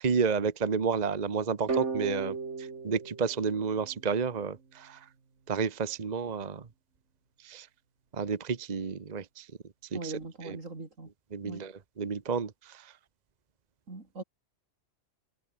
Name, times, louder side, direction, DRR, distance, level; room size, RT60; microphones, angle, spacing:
voice 1, 0.0-5.0 5.5-6.7 7.4-7.7 8.1-9.5 9.9-10.1 10.4-10.6 11.3-12.9, right 5 dB, 35° right, 1.1 m, -31 dB
sound 1, 1.7-4.5, right 4 dB, 65° right, 2.4 m, -35 dB
voice 2, 9.9-11.1 11.4-11.6 13.9-14.2, right 3 dB, 80° right, 4.2 m, -40 dB
omnidirectional pair, 1.3 m